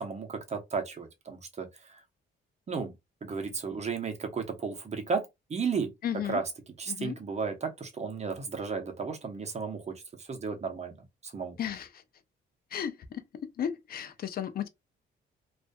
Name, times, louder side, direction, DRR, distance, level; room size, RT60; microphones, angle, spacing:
voice 1, 0.0-2.0 2.7-2.9 3.2-5.9 6.3-6.4 6.8-10.9 11.2-11.6, right 5 dB, 35° right, 0.7 m, -34 dB
voice 2, 6.0-6.4 6.9-7.2 11.6-12.0 12.7-13.2 13.6-14.7, left 9 dB, 50° left, 0.5 m, -34 dB
2.5 x 2.3 x 2.2 m
cardioid pair, 90°, 20 cm